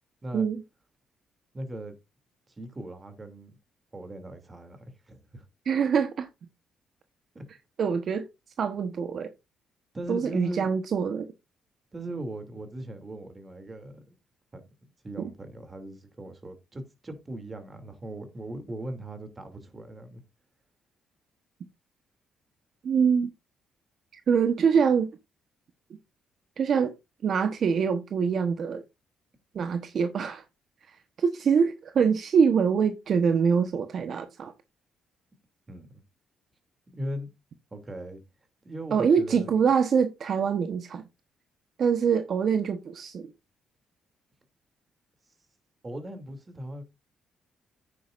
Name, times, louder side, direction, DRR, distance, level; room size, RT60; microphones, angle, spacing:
voice 1, 1.5-1.9 2.5-3.6 3.9-5.4 7.3-7.4 9.9-10.7 11.9-14.1 14.5-14.6 15.0-20.2 35.7-36.0 36.9-37.3 37.7-38.2 38.6-39.5 45.8-46.8, right 1 dB, 25° right, 2.8 m, -39 dB
voice 2, 5.6-6.3 7.8-8.3 8.6-9.3 10.1-11.3 15.2-15.3 22.8-23.3 24.3-25.1 26.6-26.9 27.2-28.8 29.5-30.4 31.2-34.5 38.9-41.0 41.8-43.3, right 6 dB, 60° right, 1.1 m, -24 dB
9.9 x 9.2 x 2.5 m
cardioid pair, 90°, 0 cm